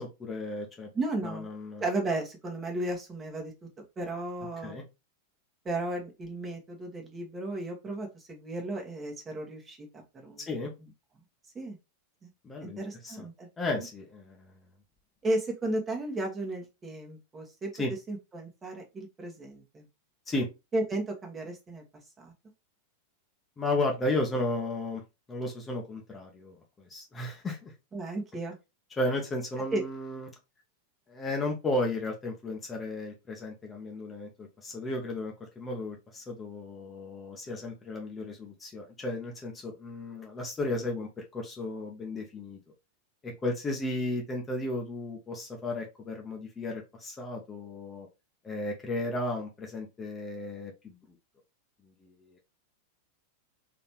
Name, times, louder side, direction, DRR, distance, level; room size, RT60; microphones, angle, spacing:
voice 1, 0.0-0.9 1.2-1.8 4.6-4.8 10.5-10.7 12.4-12.8 13.0-13.3 13.6-14.5 17.8-17.9 20.3-20.5 23.6-25.0 25.3-27.7 29.0-30.3 31.1-42.6 43.2-48.1 48.4-50.9 52.0-52.1, left 2 dB, 20° left, 1 dB, 1.0 m, -34 dB
voice 2, 0.9-1.5 1.8-3.5 4.0-4.8 5.6-10.5 10.8-10.9 11.5-11.8 12.2-12.3 12.6-13.5 13.8-13.9 15.2-17.7 18.1-19.9 20.7-21.8 22.2-22.3 27.9-28.6 29.7-29.8, right 2 dB, 20° right, 1 dB, 1.3 m, -34 dB
4.0 x 3.2 x 3.0 m, 0.25 s
figure-of-eight pair, 90°, 0 cm